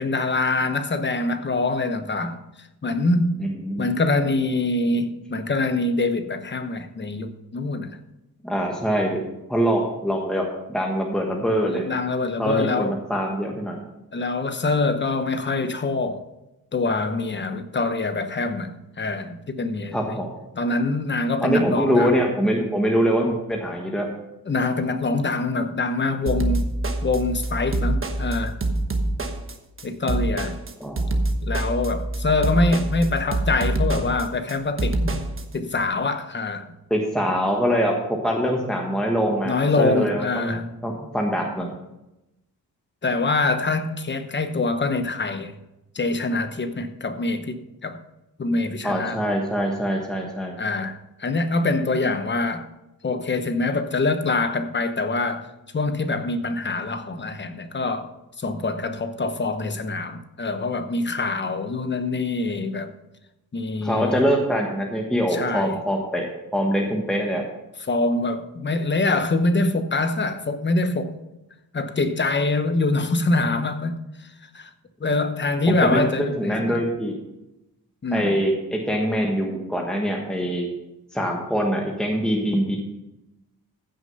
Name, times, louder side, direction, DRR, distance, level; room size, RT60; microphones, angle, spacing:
voice 1, 0.0-2.4 2.8-3.4 3.8-7.9 11.7-13.0 14.1-16.2 16.7-20.2 20.6-22.1 24.5-26.7 27.0-28.6 29.8-30.6 31.4-35.3 35.5-36.7 39.4-40.7 43.0-45.6 45.9-48.0 48.4-49.2 50.6-52.7 53.0-55.5 55.7-58.1 58.4-62.9 63.5-64.2 65.3-65.8 67.8-71.1 71.7-74.0 74.5-74.7 75.0-76.8 78.0-78.4, left 3 dB, 30° left, 0.9 m, -24 dB
voice 2, 3.4-3.9 8.4-9.2 9.5-11.8 12.4-13.8 19.9-20.3 21.4-24.1 30.8-31.1 36.9-37.9 38.2-41.7 48.8-50.6 63.8-66.3 66.5-67.4 75.7-77.1 78.1-80.7 81.1-82.8, equal, ahead, 1.4 m, -24 dB
sound 1, 26.3-35.4, right 2 dB, 35° right, 1.2 m, -25 dB
15.0 x 6.5 x 5.5 m
wide cardioid pair, 120°, 37 cm